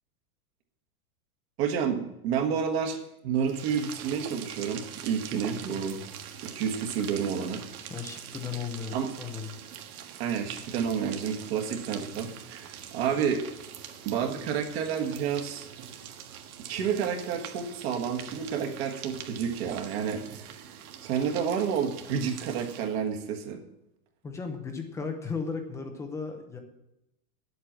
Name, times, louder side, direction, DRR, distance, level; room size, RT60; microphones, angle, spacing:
voice 1, 1.6-6.0 6.4-7.6 8.9-9.1 10.2-13.5 14.0-15.7 16.7-20.2 20.5-20.6 21.0-23.6, right 7 dB, 45° right, 3 dB, 1.6 m, -30 dB
sound 1, 3.4-23.0, right 9 dB, 75° right, 1.6 m, -44 dB
voice 2, 7.9-9.5 24.2-26.6, left 5 dB, 5° left, 5 dB, 0.6 m, -35 dB
10.0 x 8.0 x 7.5 m, 0.87 s
supercardioid pair, 170°, 44 cm